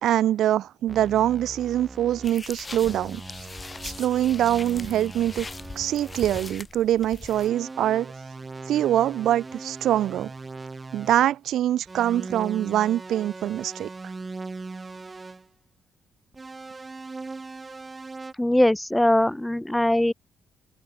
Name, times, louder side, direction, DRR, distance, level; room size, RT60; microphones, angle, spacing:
voice 1, 0.0-3.2 3.8-5.5 5.8-8.1 8.7-10.3 10.9-13.9, right 12 dB, 75° right, 0.4 m, -24 dB
sound 1, 0.9-2.4 2.8-6.6 7.3-11.3 11.9-15.5 16.3-18.3, right 3 dB, 25° right, 6.3 m, -40 dB
sound 2, 2.2-7.5, left 3 dB, 25° left, 2.7 m, -40 dB
voice 2, 18.4-20.1, left 1 dB, 5° left, 0.4 m, -21 dB
open air
cardioid pair, 90°, 0 cm